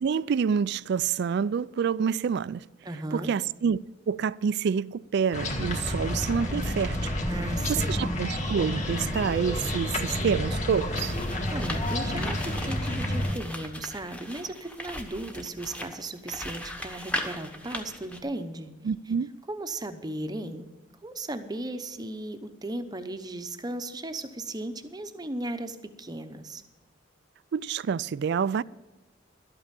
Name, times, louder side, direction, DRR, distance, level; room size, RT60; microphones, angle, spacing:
voice 1, 0.0-2.6 3.1-7.0 7.7-11.1 18.8-19.3 27.5-28.6, right 6 dB, 55° right, 0.3 m, -27 dB
voice 2, 2.8-3.3 7.3-8.0 11.5-18.7 19.5-20.7 21.0-26.6, right 1 dB, 20° right, 0.8 m, -36 dB
sound 1, 5.3-13.3, left 1 dB, 35° left, 2.0 m, -30 dB
sound 2, 10.4-18.2, equal, 5° left, 1.1 m, -38 dB
12.5 x 8.6 x 7.4 m
head